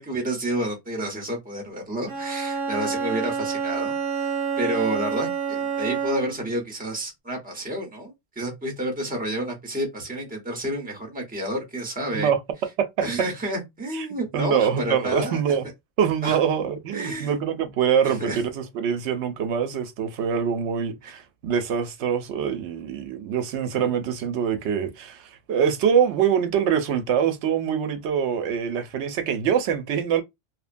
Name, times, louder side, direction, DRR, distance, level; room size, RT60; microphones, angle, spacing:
voice 1, 0.0-3.9 4.2-4.3 4.6-12.3 13.0-15.4 16.2-16.4 16.9-17.4 18.2-18.4 21.0-21.1, right 1 dB, 10° right, 0.8 m, -30 dB
Bowed string instrument, 2.1-6.5, right 6 dB, 55° right, 0.9 m, -28 dB
voice 2, 13.9-15.6 16.0-30.2, right 7 dB, 85° right, 0.9 m, -24 dB
2.9 x 2.1 x 2.5 m
omnidirectional pair, 1.1 m